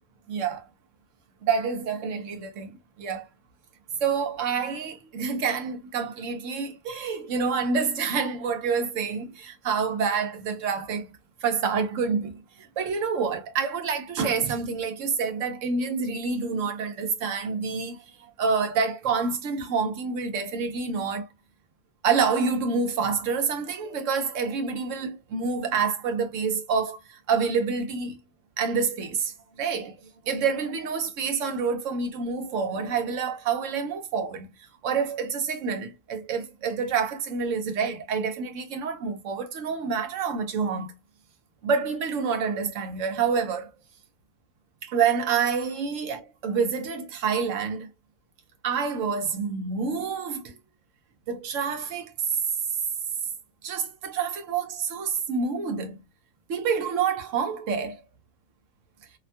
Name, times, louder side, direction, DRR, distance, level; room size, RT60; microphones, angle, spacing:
voice 1, 0.3-0.6 1.4-3.3 4.0-11.1 11.4-21.3 22.0-28.2 28.6-34.5 34.8-40.9 41.6-43.7 44.8-47.9 48.6-50.6 51.3-52.1 53.6-56.0 56.5-58.0, right 5 dB, 70° right, 1.0 m, -27 dB
2.9 x 2.2 x 2.6 m
omnidirectional pair, 1.4 m